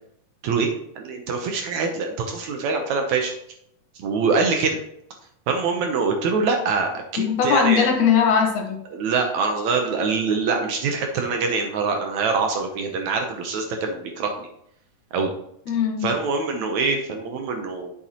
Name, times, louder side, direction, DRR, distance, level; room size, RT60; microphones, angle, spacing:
voice 1, 1.0-3.3 4.0-4.8 5.5-7.9 8.9-14.5 15.1-15.3 16.0-17.9, right 4 dB, 70° right, 4 dB, 2.0 m, -24 dB
voice 2, 7.2-8.8 15.7-16.1, left 7 dB, 70° left, 3 dB, 2.4 m, -20 dB
9.1 x 7.2 x 2.9 m, 0.74 s
omnidirectional pair, 3.8 m